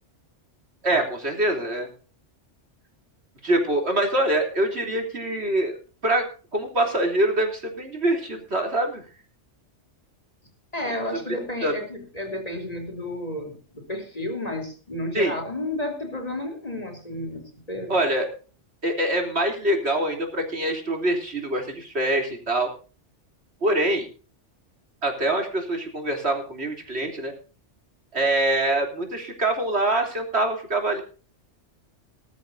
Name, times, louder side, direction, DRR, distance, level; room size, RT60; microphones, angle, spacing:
voice 1, 0.8-1.9 3.4-5.7 6.0-6.3 6.5-9.0 11.3-11.4 11.6-11.7 15.1-15.3 17.9-18.3 18.8-22.7 23.6-24.1 25.0-27.3 28.1-31.0, right 1 dB, 65° right, 3 dB, 3.7 m, -24 dB
voice 2, 10.7-18.0, left 1 dB, 35° left, 3 dB, 3.7 m, -32 dB
19.5 x 13.5 x 2.7 m, 0.37 s
omnidirectional pair, 1.2 m